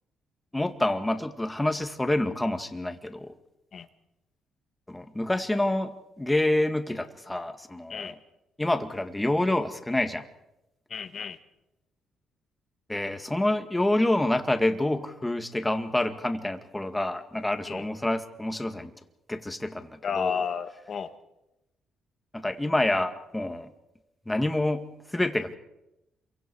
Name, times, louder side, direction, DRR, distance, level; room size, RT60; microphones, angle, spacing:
voice 1, 0.5-3.3 4.9-8.2 8.6-10.3 12.9-18.9 19.3-20.4 22.3-23.7 24.3-25.5, left 1 dB, 10° left, 7 dB, 2.2 m, -27 dB
voice 2, 10.9-11.4 17.7-17.8 20.0-21.1, left 6 dB, 50° left, 9 dB, 1.8 m, -31 dB
27.5 x 24.0 x 4.9 m, 0.90 s
cardioid pair, 90°, 0 cm